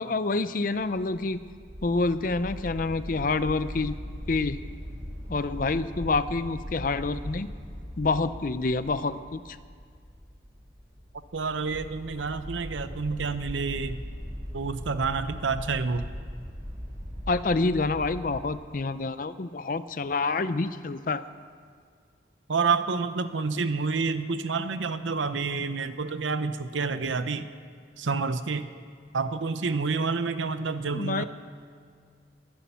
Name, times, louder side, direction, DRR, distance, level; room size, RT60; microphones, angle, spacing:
voice 1, 0.0-1.4 1.8-4.0 4.3-4.6 5.3-7.5 8.0-9.6 17.3-21.2 30.9-31.2, left 3 dB, 45° left, 13 dB, 0.5 m, -27 dB
sound 1, 0.7-18.6, equal, 40° right, 5.6 m, -40 dB
voice 2, 11.3-14.0 14.5-16.1 22.5-27.5 28.0-28.7 29.1-31.2, right 4 dB, 90° right, 12 dB, 0.8 m, -28 dB
21.5 x 10.0 x 5.7 m, 2.1 s
head